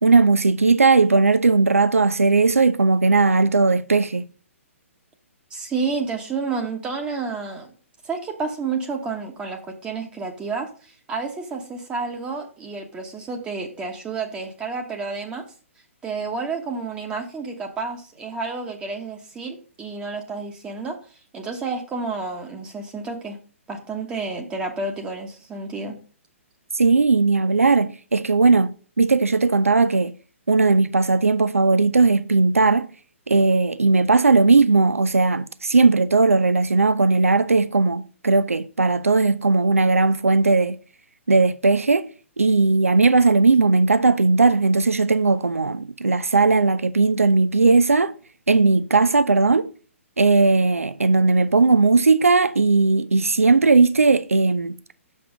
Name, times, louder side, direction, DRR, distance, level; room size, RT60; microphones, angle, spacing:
voice 1, 0.0-4.3 26.7-30.1 30.5-32.9 33.3-40.8 41.3-42.1 42.4-48.1 48.5-49.7 50.2-54.8, right 3 dB, 75° right, 0.4 m, -18 dB
voice 2, 5.5-7.7 8.0-15.4 16.0-21.0 21.3-23.4 23.7-26.0, right 4 dB, 15° right, 1.0 m, -30 dB
6.9 x 5.5 x 4.9 m
figure-of-eight pair, 125°, 7 cm